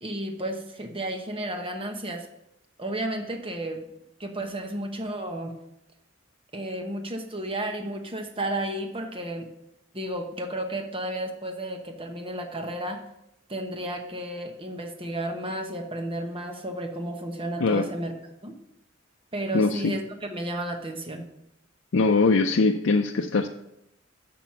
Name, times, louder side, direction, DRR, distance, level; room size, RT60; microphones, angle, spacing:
voice 1, 0.0-2.3 2.8-3.8 4.2-5.5 6.5-9.5 9.9-13.0 13.5-18.1 18.4-18.5 19.3-21.3, right 1 dB, 25° right, 4 dB, 1.0 m, -32 dB
voice 2, 19.5-19.9 21.9-23.5, left 3 dB, 65° left, 2 dB, 0.5 m, -22 dB
7.0 x 6.0 x 5.8 m, 0.80 s
head